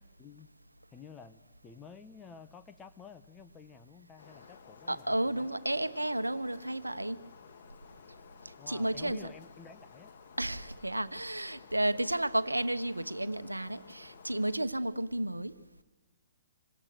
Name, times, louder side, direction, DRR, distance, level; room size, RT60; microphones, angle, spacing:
voice 1, 0.2-0.5 0.9-5.5 8.6-10.1, left 6 dB, 15° left, 1.3 m, -52 dB
sound 1, 4.2-14.6, left 6 dB, 50° left, 2.1 m, -55 dB
voice 2, 4.9-7.2 8.7-9.3 10.4-15.5, right 1 dB, 90° right, 1.1 m, -32 dB
27.0 x 24.5 x 6.8 m
figure-of-eight pair, 120°, 0 cm